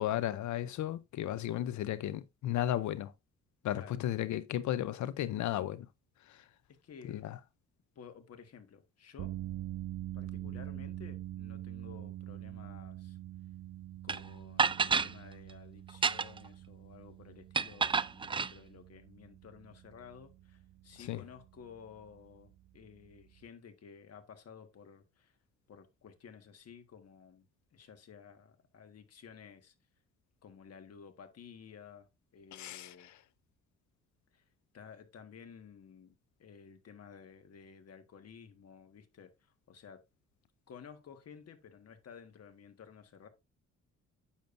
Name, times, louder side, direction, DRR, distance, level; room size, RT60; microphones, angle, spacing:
voice 1, 0.0-3.1 3.6-5.9 6.3-6.4 7.1-7.4 21.0-21.2 32.5-33.2, left 12 dB, 70° left, 0.6 m, -34 dB
voice 2, 6.8-7.2 7.9-9.4 10.1-13.2 14.0-25.3 25.7-27.5 27.7-29.7 30.4-32.1 32.3-33.1 34.3-34.4 34.7-36.1 36.4-39.3 39.7-40.0 40.7-43.3, left 7 dB, 55° left, 1.6 m, -53 dB
sound 1, 9.2-23.5, right 14 dB, 65° right, 0.6 m, -45 dB
sound 2, 14.1-14.2 14.6-15.1 15.9-16.5 17.5-18.5, right 5 dB, 20° right, 0.3 m, -29 dB
9.1 x 7.0 x 2.6 m
cardioid pair, 90°, 30 cm